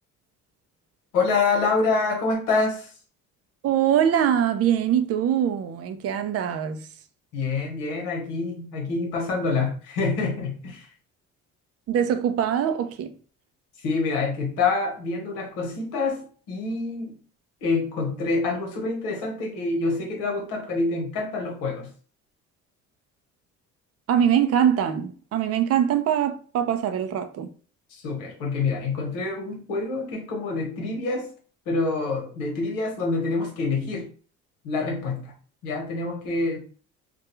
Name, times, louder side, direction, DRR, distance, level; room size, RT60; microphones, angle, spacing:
voice 1, 1.1-2.9 7.3-10.9 13.8-17.2 17.6-21.9 27.9-31.3 31.7-34.1 34.6-35.3 35.6-36.6, left 3 dB, 90° left, 1.0 m, -26 dB
voice 2, 3.6-6.9 11.9-13.1 24.1-27.5, right 9 dB, 50° right, 0.4 m, -23 dB
2.3 x 2.2 x 2.9 m
supercardioid pair, 80°, 32 cm